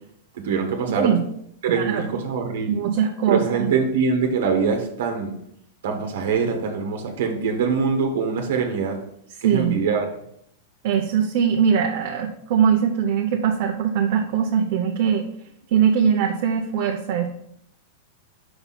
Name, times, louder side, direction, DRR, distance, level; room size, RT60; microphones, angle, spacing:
voice 1, 0.3-1.1 1.6-2.8 3.3-5.3 5.8-8.9 9.4-10.1, right 5 dB, 75° right, 3 dB, 1.2 m, -23 dB
voice 2, 0.9-1.2 1.7-2.1 2.7-3.7 9.4-9.8 10.8-15.2 15.7-17.3, right 7 dB, 55° right, 1 dB, 0.7 m, -21 dB
5.7 x 4.2 x 5.7 m, 0.73 s
supercardioid pair, 155°, 0 cm